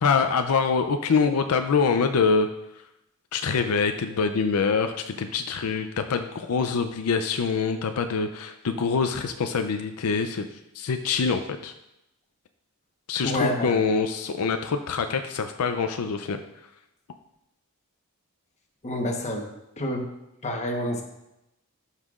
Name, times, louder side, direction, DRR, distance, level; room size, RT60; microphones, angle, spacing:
voice 1, 0.0-2.5 3.3-10.5 10.7-11.7 13.1-16.4, left 5 dB, 80° left, 7 dB, 0.5 m, -25 dB
voice 2, 13.2-13.8 18.8-19.5 19.8-20.1 20.4-21.0, left 1 dB, 30° left, 2 dB, 1.0 m, -28 dB
13.0 x 5.6 x 2.4 m, 0.89 s
head